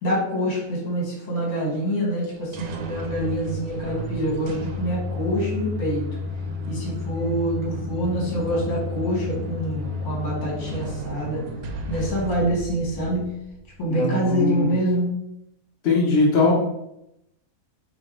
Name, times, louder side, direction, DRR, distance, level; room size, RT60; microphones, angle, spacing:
voice 1, 0.0-6.0 6.7-11.4 11.9-13.2 13.8-15.1, right 1 dB, 70° left, -3 dB, 2.0 m, -26 dB
sound 1, 2.2-13.9, left 2 dB, 85° right, 1.2 m, -32 dB
voice 2, 13.9-14.7 15.8-16.5, left 3 dB, 45° left, -3 dB, 1.2 m, -20 dB
5.2 x 2.3 x 4.4 m, 0.83 s
omnidirectional pair, 1.7 m